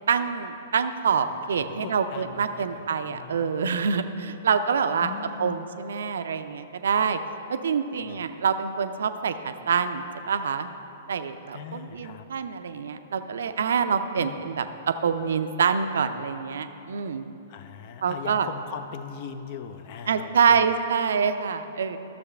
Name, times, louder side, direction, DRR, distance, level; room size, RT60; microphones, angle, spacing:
voice 1, 0.1-5.1 5.4-7.2 7.5-10.7 11.1-14.6 15.0-17.2 18.0-18.5 20.1-22.0, right 6 dB, 60° right, 9 dB, 0.5 m, -26 dB
voice 2, 1.6-2.6 3.1-3.9 5.0-5.7 8.0-8.3 11.5-12.3 14.2-14.4 17.5-20.7, left 7 dB, 40° left, 9 dB, 0.5 m, -40 dB
13.0 x 7.0 x 3.3 m, 2.8 s
figure-of-eight pair, 110°, 0 cm